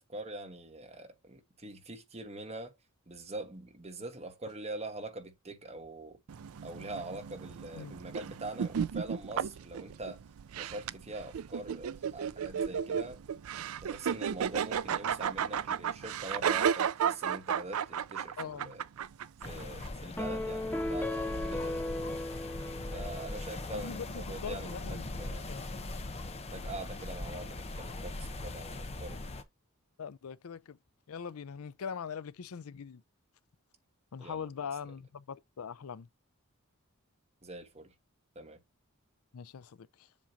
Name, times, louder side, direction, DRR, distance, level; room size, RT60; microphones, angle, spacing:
voice 1, 0.0-2.8 3.1-6.2 6.6-10.2 10.6-13.2 13.8-18.8 19.4-22.0 22.9-25.5 26.5-29.3 34.2-34.5 37.4-37.9 38.3-38.6, right 2 dB, 30° right, 1.3 m, -44 dB
sound 1, 6.3-19.9, right 8 dB, 80° right, 0.4 m, -34 dB
voice 2, 18.4-18.7 23.7-25.7 26.5-26.7 30.0-30.8 31.1-33.0 34.1-36.1 39.3-40.1, left 6 dB, 85° left, 0.5 m, -42 dB
sound 2, 19.4-29.4, left 2 dB, 30° left, 0.8 m, -40 dB
sound 3, 20.2-23.7, left 1 dB, 10° left, 0.4 m, -36 dB
7.4 x 2.9 x 5.2 m
head